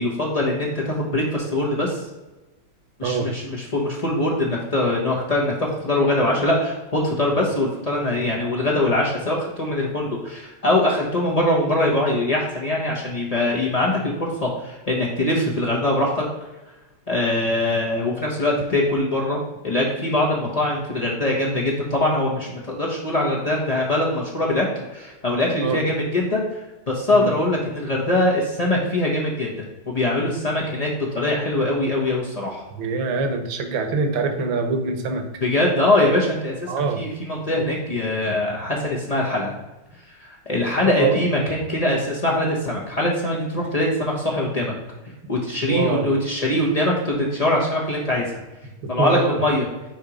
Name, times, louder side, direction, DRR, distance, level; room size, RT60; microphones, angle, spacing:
voice 1, 0.0-2.1 3.0-16.3 17.1-19.4 19.6-24.7 24.9-26.4 26.9-32.6 35.4-39.5 40.2-44.7 45.3-48.4 48.9-49.7, left 1 dB, 85° left, -3 dB, 0.3 m, -22 dB
voice 2, 32.8-35.2 36.7-37.0 40.9-41.2 45.7-46.1 48.8-49.4, right 4 dB, 65° right, 6 dB, 1.5 m, -24 dB
8.9 x 3.0 x 4.9 m, 1.1 s
omnidirectional pair, 2.4 m